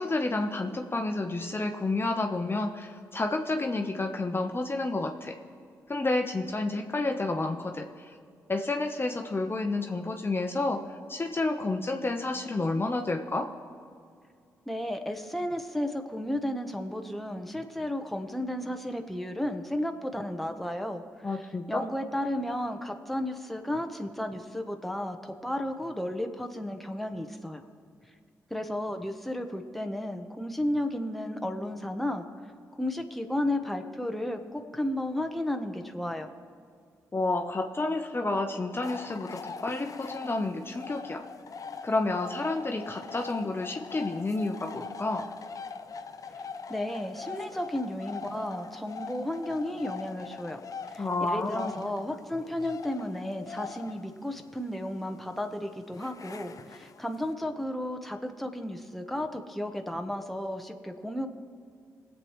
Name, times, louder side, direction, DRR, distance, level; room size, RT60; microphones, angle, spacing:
voice 1, 0.0-5.4 5.9-7.9 8.5-10.8 11.1-13.5 21.2-21.8 37.1-41.2 41.8-45.2 51.0-51.9, left 2 dB, 30° left, 4 dB, 1.0 m, -30 dB
voice 2, 14.7-27.6 28.5-32.2 32.8-36.3 46.4-50.6 50.9-61.3, left 1 dB, ahead, 4 dB, 1.1 m, -33 dB
sound 1, 38.8-57.3, left 5 dB, 50° left, 0.7 m, -43 dB
20.5 x 7.6 x 3.2 m, 2.3 s
hypercardioid pair, 45°, 8 cm